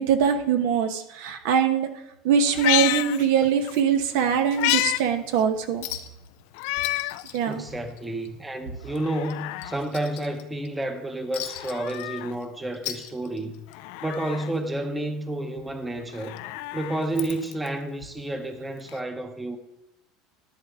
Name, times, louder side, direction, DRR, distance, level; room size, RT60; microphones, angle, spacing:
voice 1, 0.0-1.9 2.2-5.9 7.3-7.6, right 7 dB, 70° right, 1.2 m, -22 dB
Meow, 2.5-3.8 4.2-5.0 5.4-5.5 6.5-7.2 7.7-7.8 8.8-9.8 11.4-12.3 13.7-14.5 16.0-17.7 18.9-19.0, left 18 dB, 65° left, 0.3 m, -29 dB
Chink clink, 4.7-5.1 5.4-5.5 5.8-6.3 6.6-8.3 8.6-8.8 9.2-10.7 11.3-12.4 12.7-13.7 14.8-14.9, left 13 dB, 90° left, 1.1 m, -37 dB
voice 2, 7.4-13.7 14.0-16.4 16.7-19.6, right 1 dB, 10° right, 0.9 m, -30 dB
12.0 x 10.5 x 3.7 m
cardioid pair, 155°, 0 cm